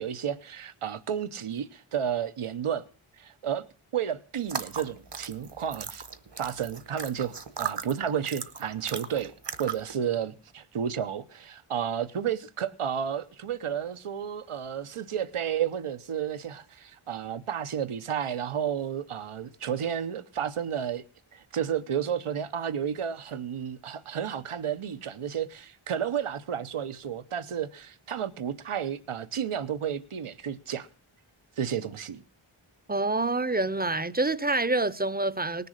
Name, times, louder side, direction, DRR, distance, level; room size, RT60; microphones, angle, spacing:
voice 1, 0.0-2.8 3.2-3.6 3.9-6.0 6.4-9.3 9.6-21.0 21.3-30.9 31.6-32.2, right 8 dB, 80° right, 0.9 m, -32 dB
sound 1, 4.4-9.9, right 6 dB, 55° right, 1.2 m, -37 dB
voice 2, 32.9-35.7, right 2 dB, 20° right, 0.6 m, -27 dB
19.0 x 6.8 x 6.5 m
wide cardioid pair, 70°, 49 cm